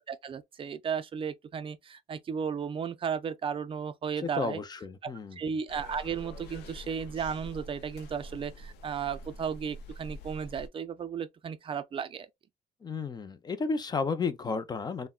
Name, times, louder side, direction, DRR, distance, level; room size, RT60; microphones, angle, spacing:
voice 1, 0.1-4.6 5.0-12.3, right 7 dB, 30° right, 0.4 m, -34 dB
voice 2, 4.4-5.4 12.8-15.1, left 4 dB, 25° left, 0.5 m, -32 dB
sound 1, 5.7-10.7, equal, 85° left, 0.7 m, -45 dB
3.5 x 2.1 x 2.2 m
cardioid pair, 110°, 17 cm